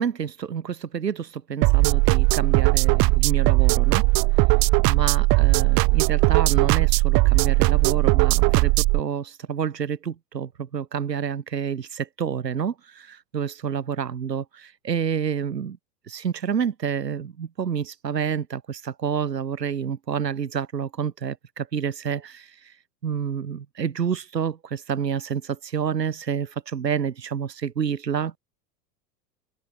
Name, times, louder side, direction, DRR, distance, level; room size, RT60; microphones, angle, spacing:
voice 1, 0.0-4.0 4.8-15.8 16.1-22.7 23.0-28.4, right 7 dB, 80° right, 2.7 m, -28 dB
House beat, 1.6-9.0, right 26 dB, 45° right, 2.8 m, -19 dB
open air
figure-of-eight pair, 85°, 49 cm